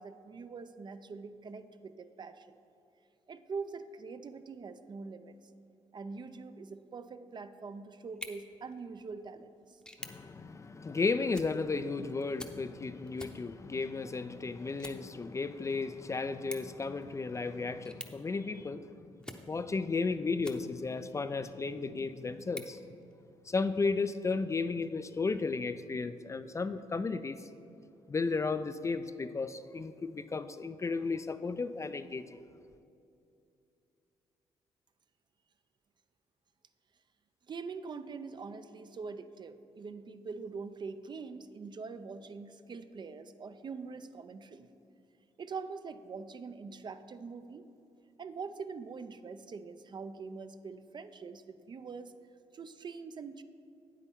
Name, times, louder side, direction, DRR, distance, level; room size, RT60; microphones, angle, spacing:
voice 1, 0.0-2.6 3.3-5.4 5.9-9.8 37.5-44.7 45.4-47.7 48.2-52.1 52.5-53.4, right 4 dB, 40° right, 11 dB, 0.5 m, -44 dB
sound 1, 8.0-21.0 21.5-23.6, left 1 dB, 5° left, 0.7 m, -52 dB
voice 2, 10.0-19.1 19.5-22.8 23.5-27.4 28.1-32.3, left 4 dB, 25° left, 11 dB, 0.3 m, -34 dB
8.9 x 8.3 x 3.6 m, 2.6 s
cardioid pair, 70°, 12 cm